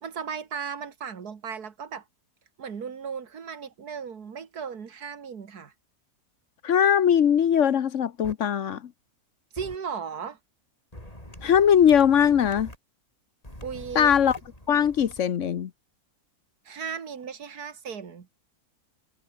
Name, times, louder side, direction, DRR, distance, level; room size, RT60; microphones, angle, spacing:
voice 1, 0.0-2.0 2.6-5.7 9.5-10.4 13.6-14.2 16.6-18.3, right 6 dB, 90° right, 2.3 m, -36 dB
voice 2, 6.6-8.9 11.4-12.7 13.9-14.4 14.7-15.7, left 8 dB, 60° left, 1.1 m, -20 dB
sound 1, 8.2-8.3 9.6-9.8 10.9-12.8 13.4-15.2, left 1 dB, 25° left, 7.6 m, -44 dB
omnidirectional pair, 1.6 m